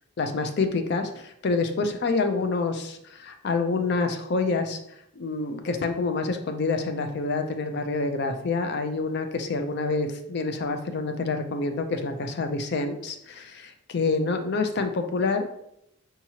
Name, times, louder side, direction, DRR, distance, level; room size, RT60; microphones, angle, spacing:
voice 1, 0.2-4.8 5.2-15.6, left 3 dB, 50° left, 6 dB, 0.4 m, -27 dB
4.7 x 2.9 x 2.8 m, 0.77 s
head